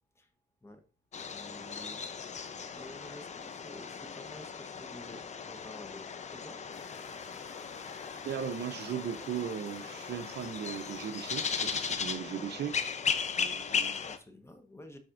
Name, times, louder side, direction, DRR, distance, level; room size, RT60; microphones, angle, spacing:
sound 1, 1.1-14.2, left 6 dB, 35° left, 0.6 m, -37 dB
voice 1, 1.2-2.2 2.7-6.0 6.3-6.6 14.0-15.0, left 1 dB, 15° left, 1.1 m, -50 dB
sound 2, 6.7-12.0, left 4 dB, 75° left, 2.5 m, -54 dB
voice 2, 8.2-12.8 13.4-14.0, right 8 dB, 55° right, 0.6 m, -37 dB
12.0 x 4.1 x 2.6 m
cardioid pair, 90°, 20 cm